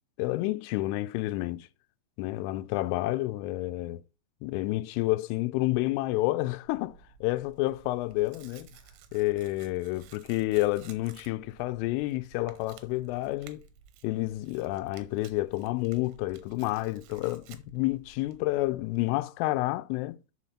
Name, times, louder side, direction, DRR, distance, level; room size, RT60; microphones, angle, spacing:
voice 1, 0.2-1.7 2.2-4.0 4.4-8.7 9.1-13.6 14.0-20.2, left 19 dB, 90° left, 3.1 m, -29 dB
Tearing, 6.6-19.0, right 8 dB, 75° right, 3.0 m, -55 dB
6.9 x 6.7 x 4.2 m
omnidirectional pair, 5.6 m